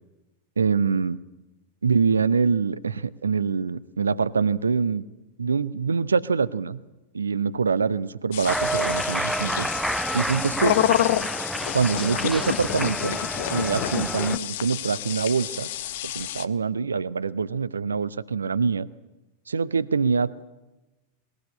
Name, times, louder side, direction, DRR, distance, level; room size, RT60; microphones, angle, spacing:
voice 1, 0.6-1.2 1.8-5.0 5.4-6.8 7.1-9.7 10.1-10.8 11.7-13.2 13.5-15.7 16.0-18.9 19.5-20.4, right 5 dB, 75° right, 18 dB, 0.6 m, -24 dB
sound 1, 8.3-16.5, left 13 dB, 55° left, 0.7 m, -28 dB
Cheering, 8.5-14.4, right 1 dB, 5° right, 0.7 m, -29 dB
20.0 x 18.5 x 8.6 m, 1.1 s
figure-of-eight pair, 90°, 0 cm